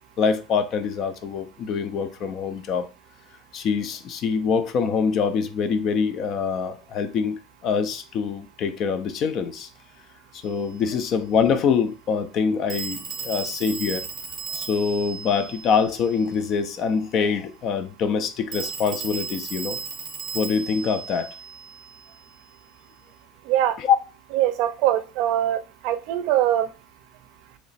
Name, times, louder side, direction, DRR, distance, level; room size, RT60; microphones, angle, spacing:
voice 1, 0.2-2.9 3.5-9.7 10.3-14.0 14.5-19.8 20.3-21.3 23.9-24.0, left 6 dB, 40° left, 0.4 m, -24 dB
Telephone, 10.4-10.6 12.7-16.4 18.5-22.2, right 6 dB, 25° right, 0.8 m, -35 dB
voice 2, 23.4-23.8 24.3-26.7, right 12 dB, 60° right, 0.5 m, -22 dB
3.1 x 2.9 x 4.0 m
cardioid pair, 165°, 0 cm